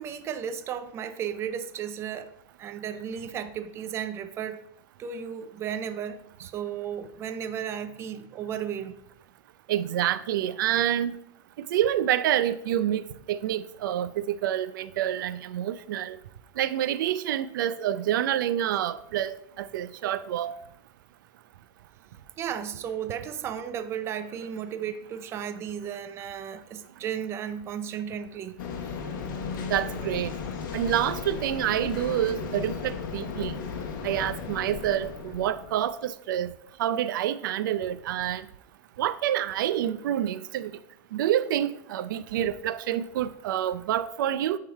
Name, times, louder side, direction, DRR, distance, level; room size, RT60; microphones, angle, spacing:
voice 1, 0.0-2.3 2.6-4.6 5.0-8.9 22.4-28.5, right 8 dB, 25° right, 0.5 m, -34 dB
voice 2, 9.7-11.2 11.7-16.2 16.6-19.3 19.6-20.6 29.7-30.3 30.7-33.6 34.0-36.5 36.8-38.4 39.0-40.7 41.1-44.6, right 11 dB, 80° right, 0.5 m, -27 dB
sound 1, 28.6-35.9, left 5 dB, 80° left, 1.2 m, -35 dB
9.3 x 3.7 x 4.6 m
supercardioid pair, 155°, 11 cm